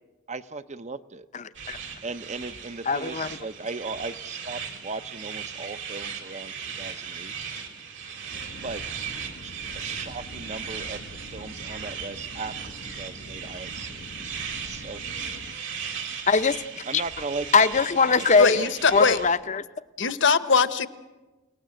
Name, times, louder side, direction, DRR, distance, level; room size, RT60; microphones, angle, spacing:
voice 1, 0.3-1.3 2.0-7.3 8.6-8.8 9.4-14.1 14.6-15.5 16.9-17.7 18.1-18.8, right 3 dB, 35° right, 13 dB, 0.7 m, -37 dB
voice 2, 1.3-1.8 2.9-3.3 16.3-16.6 17.5-18.6 18.9-19.6, left 4 dB, 35° left, 13 dB, 0.7 m, -21 dB
sound 1, 1.5-19.3, right 7 dB, 65° right, 3.5 m, -37 dB
sound 2, 8.3-15.6, left 1 dB, 80° left, 1.6 m, -45 dB
voice 3, 18.4-19.2 20.0-20.9, left 5 dB, 65° left, 12 dB, 1.1 m, -21 dB
29.0 x 18.5 x 7.8 m, 1.2 s
head